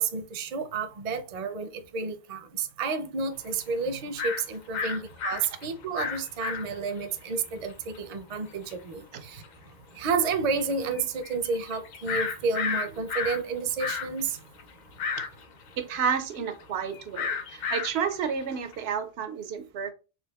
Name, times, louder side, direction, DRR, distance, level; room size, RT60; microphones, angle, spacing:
voice 1, 0.0-9.4 9.9-14.4, right 4 dB, 50° right, 0.5 m, -30 dB
sound 1, 3.5-3.6 4.2-4.4 4.7-7.0 7.4-7.5 7.7-8.0 8.7-8.8 9.4-9.5 10.0-10.1 10.5-13.4 13.7-18.8, left 5 dB, 55° left, 0.6 m, -32 dB
voice 2, 15.8-19.9, right 7 dB, 90° right, 0.8 m, -31 dB
4.0 x 3.3 x 2.2 m
omnidirectional pair, 1.0 m